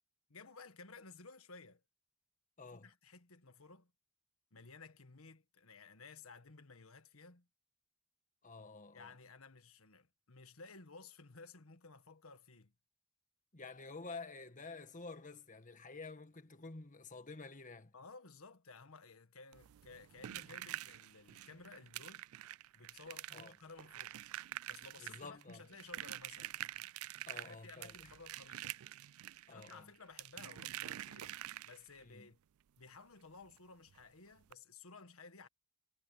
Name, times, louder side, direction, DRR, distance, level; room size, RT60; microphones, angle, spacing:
voice 1, 0.3-1.8 2.7-3.9 4.5-7.5 8.9-12.7 17.9-22.3 22.7-24.2 24.7-26.6 27.3-28.8 29.5-31.3 31.6-32.4 32.8-35.5, left 4 dB, 80° left, 1.6 m, -56 dB
voice 2, 2.6-2.9 8.4-9.1 13.5-17.9 23.3-23.5 25.0-25.7 27.3-28.2 29.5-29.9 32.0-32.3, left 3 dB, 40° left, 1.8 m, -50 dB
sound 1, 19.5-32.0 33.5-33.6 33.9-34.0 34.4-34.5, right 13 dB, 90° right, 0.4 m, -47 dB
head